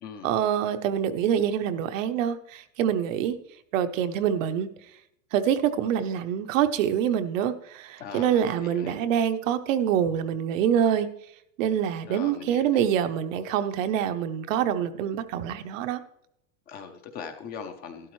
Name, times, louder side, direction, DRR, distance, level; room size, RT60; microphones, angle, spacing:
voice 1, 0.2-3.4 3.7-4.7 5.3-11.1 11.6-16.0, right 9 dB, 65° right, 9 dB, 0.9 m, -25 dB
voice 2, 8.0-9.0 12.1-12.6 16.7-18.1, left 6 dB, 25° left, 6 dB, 0.6 m, -40 dB
12.5 x 11.5 x 3.1 m, 0.77 s
supercardioid pair, 170°, 41 cm